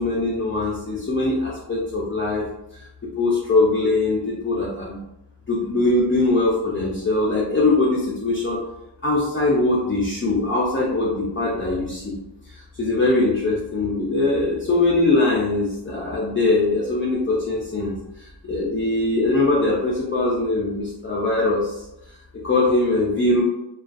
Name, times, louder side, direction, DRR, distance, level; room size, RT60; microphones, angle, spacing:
voice 1, 0.0-2.5 2.7-2.8 3.2-5.0 5.5-8.6 9.0-12.1 12.5-21.8 22.4-23.4, left 2 dB, 25° left, -5 dB, 0.5 m, -21 dB
2.4 x 2.3 x 2.5 m, 0.89 s
wide cardioid pair, 70°, 46 cm